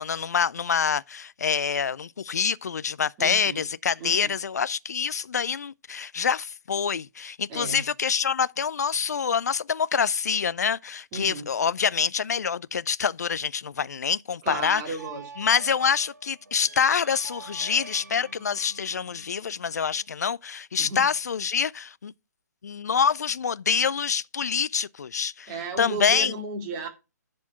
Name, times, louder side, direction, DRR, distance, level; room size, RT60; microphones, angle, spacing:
voice 1, 0.0-14.8 15.4-22.1 22.6-25.5 25.8-26.3, left 6 dB, 65° left, 0.4 m, -26 dB
voice 2, 3.2-3.6 4.0-4.3 7.5-7.8 11.1-11.5 14.4-15.2 20.8-21.1 25.5-26.9, right 3 dB, 25° right, 2.5 m, -34 dB
sound 1, 15.0-20.1, right 3 dB, 70° right, 1.3 m, -47 dB
10.5 x 4.4 x 5.6 m
figure-of-eight pair, 135°, 10 cm